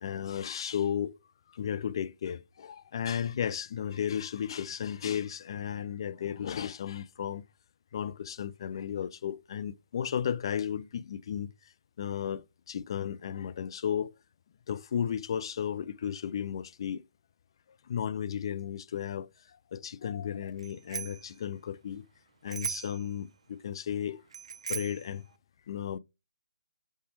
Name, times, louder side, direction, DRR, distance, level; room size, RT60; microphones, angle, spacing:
voice 1, 0.0-1.1 1.5-7.4 7.9-11.5 12.0-14.1 14.7-17.0 17.9-19.3 19.7-22.0 22.4-24.2 24.7-25.2 25.7-26.0, left 8 dB, 40° left, 0.4 m, -34 dB
Bicycle bell, 20.6-21.3 22.5-23.1 24.3-25.1, right 7 dB, 50° right, 0.4 m, -38 dB
5.0 x 4.2 x 5.1 m
figure-of-eight pair, 140°, 4 cm